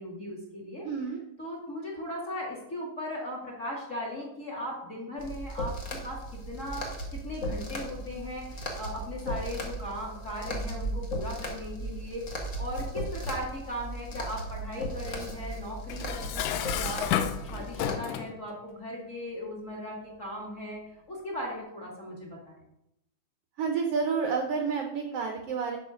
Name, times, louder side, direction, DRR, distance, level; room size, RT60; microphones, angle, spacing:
voice 1, 0.0-0.9 1.4-20.8 21.1-22.6, left 1 dB, 25° left, -1 dB, 1.9 m, -38 dB
voice 2, 0.8-1.2 23.6-25.8, right 5 dB, 85° right, 4 dB, 1.3 m, -29 dB
sound 1, 5.2-17.9, right 1 dB, 55° left, 0.8 m, -36 dB
Dishes pots and pans, 15.9-18.4, left 10 dB, 85° left, 2.2 m, -31 dB
12.0 x 5.0 x 5.0 m, 0.82 s
omnidirectional pair, 3.8 m